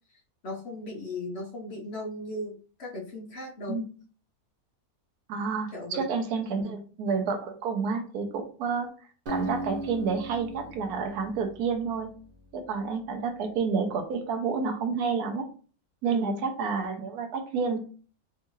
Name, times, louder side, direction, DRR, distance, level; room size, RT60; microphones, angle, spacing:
voice 1, 0.4-3.8 5.7-6.0 6.5-6.8 16.0-16.4, left 1 dB, 55° left, -1 dB, 0.8 m, -37 dB
voice 2, 5.3-8.9 9.3-12.1 12.5-15.5 16.0-17.8, right 5 dB, 80° right, 6 dB, 1.1 m, -29 dB
Acoustic guitar, 9.3-12.8, right 1 dB, 45° right, 0.7 m, -38 dB
3.6 x 2.4 x 2.9 m, 0.39 s
omnidirectional pair, 1.7 m